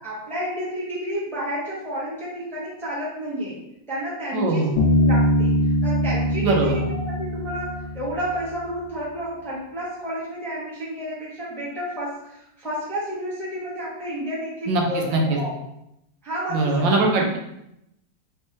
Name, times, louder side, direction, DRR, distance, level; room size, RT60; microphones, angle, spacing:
voice 1, 0.0-3.6 3.9-5.5 5.8-15.5 16.2-17.3, equal, ahead, -8 dB, 0.9 m, -30 dB
voice 2, 4.3-4.7 6.4-6.8 14.7-15.4 16.5-17.4, right 3 dB, 85° right, 0 dB, 1.4 m, -21 dB
Bass guitar, 4.8-8.5, equal, 85° left, 1.4 m, -22 dB
3.5 x 3.3 x 3.0 m, 0.83 s
omnidirectional pair, 2.0 m